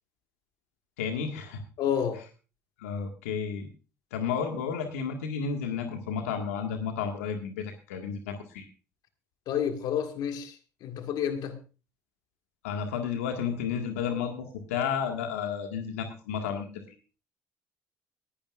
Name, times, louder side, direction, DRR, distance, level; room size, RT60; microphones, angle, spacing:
voice 1, 1.0-1.6 2.8-3.7 4.1-8.7 12.6-16.7, left 7 dB, 85° left, 4 dB, 1.8 m, -32 dB
voice 2, 1.8-2.2 9.5-11.6, left 8 dB, 65° left, 6 dB, 1.9 m, -30 dB
19.5 x 11.5 x 2.5 m, 0.34 s
hypercardioid pair, 65°, 7 cm